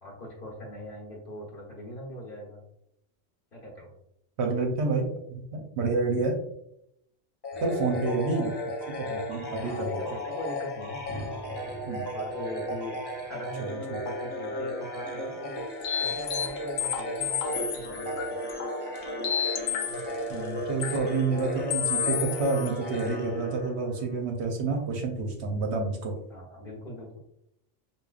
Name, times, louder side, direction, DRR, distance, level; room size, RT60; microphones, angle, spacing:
voice 1, 0.0-2.6 3.5-3.9 7.5-8.2 9.6-11.1 12.1-13.0 13.2-15.6 16.0-18.3 19.9-20.0 24.7-24.8 26.3-27.2, left 1 dB, 45° left, -3 dB, 1.2 m, -41 dB
voice 2, 4.4-6.4 7.6-8.5 9.0-10.0 11.9-12.0 13.6-14.0 20.3-26.1, right 3 dB, 65° right, 2 dB, 0.9 m, -29 dB
sound 1, 7.4-24.2, equal, 30° left, 0.4 m, -35 dB
sound 2, 11.1-15.7, right 1 dB, 5° left, 1.2 m, -46 dB
sound 3, 15.8-20.2 20.8-21.0 21.4-21.5 21.7-22.7 23.0-23.1, left 8 dB, 90° left, 1.0 m, -31 dB
4.8 x 2.5 x 2.3 m, 0.76 s
omnidirectional pair, 1.3 m